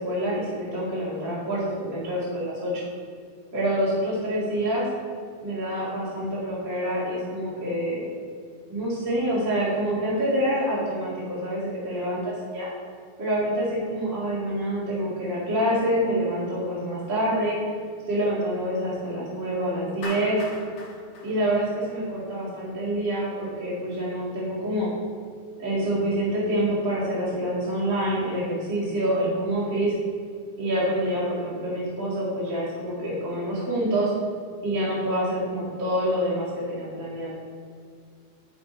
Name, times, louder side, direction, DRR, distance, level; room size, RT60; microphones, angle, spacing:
voice 1, 0.0-2.9 3.5-4.9 5.4-8.0 8.7-12.7 13.2-17.6 18.1-20.4 21.2-24.9 25.6-29.9 30.6-34.1 34.6-37.3, right 1 dB, 35° right, -8 dB, 2.2 m, -26 dB
Clapping, 20.0-22.3, left 3 dB, 65° left, 1.4 m, -40 dB
10.0 x 6.0 x 4.2 m, 2.2 s
omnidirectional pair, 4.6 m